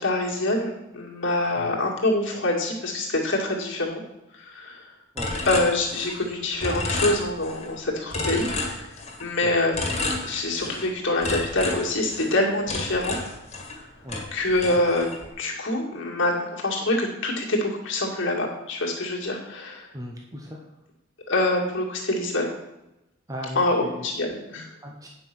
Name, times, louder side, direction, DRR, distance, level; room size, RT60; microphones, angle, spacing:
voice 1, 0.0-4.0 4.3-4.9 5.5-8.9 9.2-9.9 10.2-13.2 14.3-15.1 15.4-19.9 21.3-22.5 23.6-24.7, left 2 dB, 60° left, -2 dB, 2.0 m, -25 dB
sound 1, 5.2-6.3 6.6-7.7 8.1-9.3 9.7-10.9 11.2-13.8 14.1-15.3, left 2 dB, 30° left, 2.0 m, -30 dB
voice 2, 19.9-20.6 23.3-24.1 24.8-25.1, equal, 15° right, -1 dB, 0.9 m, -37 dB
9.2 x 5.5 x 6.0 m, 0.93 s
head